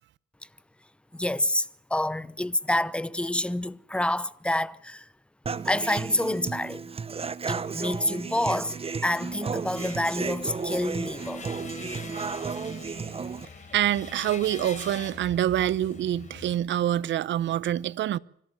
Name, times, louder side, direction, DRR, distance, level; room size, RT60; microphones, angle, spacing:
voice 1, 1.1-5.1 5.6-6.9 7.5-8.7 9.0-11.4, left 1 dB, 5° left, 0.8 m, -28 dB
Human voice / Acoustic guitar, 5.5-13.4, right 5 dB, 30° right, 1.0 m, -33 dB
sound 1, 7.6-15.4, left 6 dB, 60° left, 5.8 m, -59 dB
sound 2, 9.7-16.6, left 4 dB, 40° left, 4.5 m, -44 dB
voice 2, 13.7-18.2, right 11 dB, 70° right, 0.7 m, -26 dB
25.5 x 14.5 x 8.0 m
cardioid pair, 90°, 20 cm